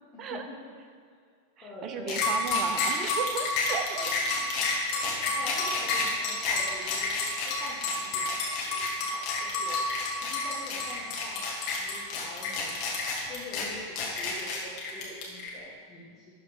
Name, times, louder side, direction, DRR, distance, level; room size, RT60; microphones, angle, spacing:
voice 1, 0.1-0.6 1.6-2.3 4.8-7.1 7.5-8.8 9.1-9.8 10.2-11.4 11.8-12.8 13.2-16.3, left 1 dB, 20° left, -8 dB, 2.0 m, -45 dB
voice 2, 1.6-4.1 4.4-4.6 5.6-5.7, right 5 dB, 30° right, 6 dB, 0.8 m, -35 dB
sound 1, 2.1-15.5, left 3 dB, 40° left, 2.1 m, -29 dB
12.0 x 4.2 x 5.3 m, 2.1 s
figure-of-eight pair, 90°, 0 cm